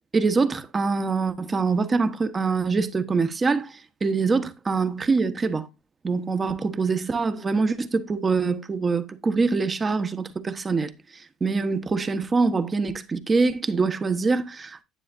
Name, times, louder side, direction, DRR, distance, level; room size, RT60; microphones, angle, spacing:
voice 1, 0.1-5.7 6.0-14.8, right 4 dB, 30° right, 1.3 m, -24 dB
10.0 x 9.6 x 2.6 m
hypercardioid pair, 60°, 0 cm